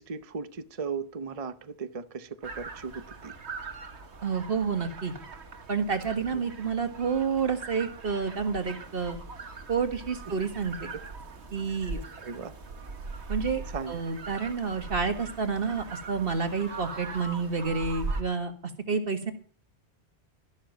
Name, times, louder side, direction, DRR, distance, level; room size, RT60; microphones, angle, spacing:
voice 1, 0.0-3.3 6.3-6.4 12.2-12.5 13.7-14.0, right 5 dB, 35° right, 11 dB, 0.8 m, -37 dB
sound 1, 2.4-18.2, right 3 dB, 90° right, 1.8 m, -40 dB
voice 2, 4.2-5.1 5.7-9.2 9.7-10.9 11.5-12.0 13.3-13.6 13.9-18.5 18.9-19.3, right 5 dB, 60° right, 7 dB, 1.9 m, -29 dB
14.0 x 11.5 x 5.2 m, 0.43 s
omnidirectional pair, 1.1 m